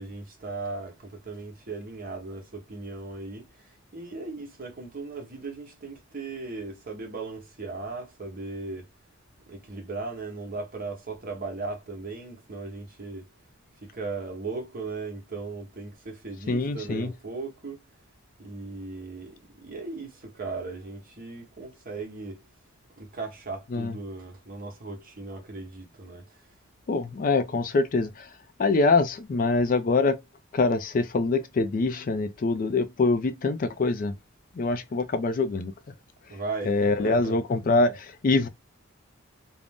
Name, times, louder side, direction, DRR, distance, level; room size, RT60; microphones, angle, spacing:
voice 1, 0.0-8.9 9.5-13.3 13.8-17.8 18.4-22.4 23.0-26.4 36.3-37.4, right 3 dB, 45° right, 0.9 m, -37 dB
voice 2, 16.5-17.1 23.7-23.9 26.9-28.3 28.6-30.2 30.5-34.1 34.6-35.7 36.7-38.5, left 3 dB, 40° left, 0.4 m, -24 dB
2.5 x 2.0 x 3.4 m
head